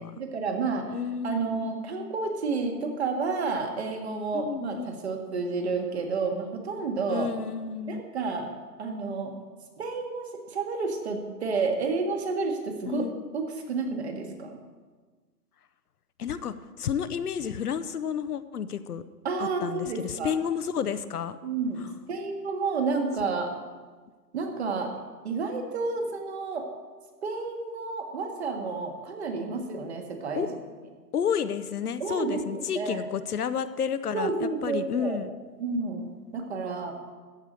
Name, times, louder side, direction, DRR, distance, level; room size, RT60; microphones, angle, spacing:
voice 1, 0.2-0.9 1.2-7.3 7.9-8.5 8.8-9.3 9.8-13.0 13.3-14.6 19.2-20.3 21.4-23.5 24.3-24.9 25.2-26.7 27.2-30.6 32.0-33.0 34.1-35.2 35.6-36.1 36.3-36.9, right 4 dB, 40° right, 4 dB, 1.8 m, -30 dB
voice 2, 0.9-1.6 4.3-4.9 7.1-8.0 12.9-13.2 16.2-19.0 19.4-21.4 30.4-30.5 31.1-35.3, left 7 dB, 65° left, 12 dB, 0.8 m, -31 dB
14.5 x 4.9 x 9.0 m, 1.4 s
hypercardioid pair, 160°, 50 cm